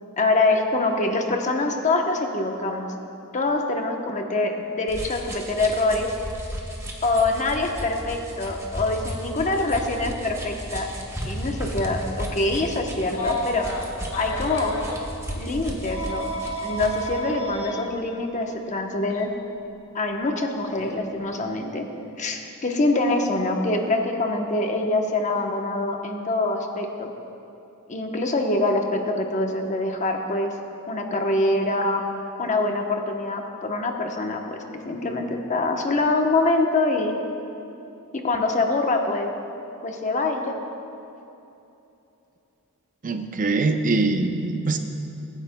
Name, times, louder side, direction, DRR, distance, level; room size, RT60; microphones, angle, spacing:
voice 1, 0.2-2.9 3.3-6.1 7.0-10.9 11.2-13.7 14.1-14.7 15.4-16.3 16.6-19.3 19.9-21.8 22.2-27.1 27.9-30.5 30.9-32.0 32.4-34.6 34.8-37.1 38.1-39.3 39.8-40.6, left 2 dB, 35° left, 3 dB, 0.9 m, -24 dB
sound 1, 4.9-17.1, equal, 15° right, 1.2 m, -34 dB
Telephone, 13.1-15.0 15.8-17.7 19.1-19.2 20.8-21.0, equal, 85° left, 2.3 m, -31 dB
voice 2, 43.0-44.8, right 3 dB, 40° right, 6 dB, 0.5 m, -23 dB
22.5 x 9.8 x 2.2 m, 2.9 s
head